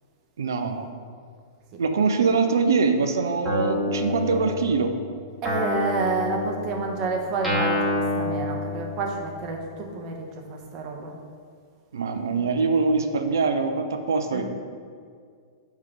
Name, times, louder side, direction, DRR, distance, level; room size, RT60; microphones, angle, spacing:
voice 1, 0.4-0.9 1.8-4.9 11.9-14.4, right 4 dB, 65° right, 7 dB, 0.6 m, -23 dB
Guitar, 3.4-5.0 5.4-9.3, left 1 dB, 5° right, 1.4 m, -28 dB
voice 2, 5.4-10.2 10.5-11.1 14.3-14.4, right 3 dB, 35° right, 2 dB, 0.9 m, -29 dB
4.8 x 4.8 x 5.7 m, 2.1 s
figure-of-eight pair, 105°, 2 cm